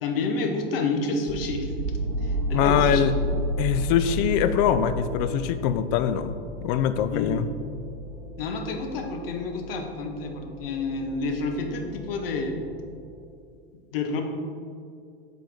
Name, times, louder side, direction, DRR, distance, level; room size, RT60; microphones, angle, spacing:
voice 1, 0.0-1.9 2.2-3.1 7.1-7.3 8.4-12.6 13.9-14.2, left 3 dB, 65° left, 4 dB, 0.9 m, -29 dB
sound 1, 1.3-13.2, equal, 45° right, 0.8 m, -32 dB
voice 2, 2.5-3.1 3.6-6.3 6.6-7.5, left 9 dB, 45° left, 11 dB, 0.4 m, -23 dB
7.3 x 4.0 x 3.4 m, 2.3 s
hypercardioid pair, 95°, 30 cm